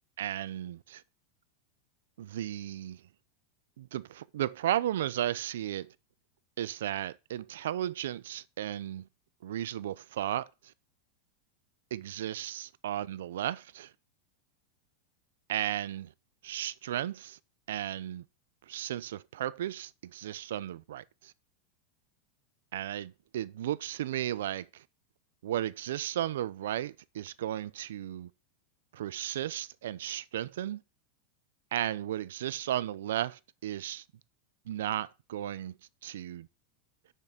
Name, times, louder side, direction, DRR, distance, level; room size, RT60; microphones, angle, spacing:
voice 1, 0.2-1.0 2.2-3.0 3.8-5.9 6.6-9.1 9.4-10.5 11.9-13.9 15.5-16.1 16.4-17.4 17.7-18.2 18.7-21.3 22.7-24.8 25.4-28.3 28.9-30.8 31.7-34.0 34.7-35.8 36.0-36.5, right 12 dB, 85° right, 0.5 m, -34 dB
6.6 x 6.0 x 6.7 m
supercardioid pair, 180°, 0 cm